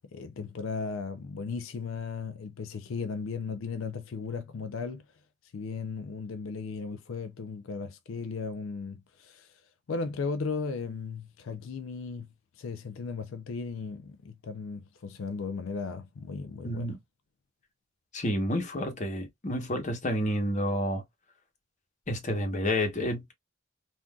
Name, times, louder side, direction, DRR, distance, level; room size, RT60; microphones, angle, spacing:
voice 1, 0.1-5.0 5.5-9.5 9.9-12.3 12.6-16.9, left 4 dB, 85° left, 0.4 m, -36 dB
voice 2, 16.6-17.0 18.1-21.0 22.1-23.3, equal, 40° left, 1.0 m, -29 dB
3.6 x 2.5 x 2.2 m
head